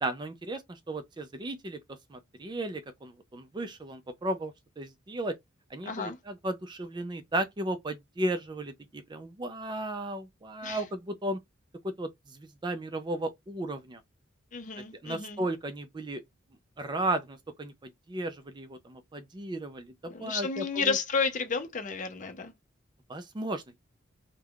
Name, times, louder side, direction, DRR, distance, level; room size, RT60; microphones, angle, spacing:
voice 1, 0.0-1.8 2.1-5.3 5.7-11.4 12.0-14.0 15.0-16.2 16.8-21.0 23.1-23.6, right 1 dB, 25° right, 0.4 m, -35 dB
voice 2, 5.9-6.2 10.6-10.8 14.5-15.5 20.1-22.5, left 5 dB, 40° left, 0.6 m, -32 dB
3.3 x 2.1 x 2.3 m
head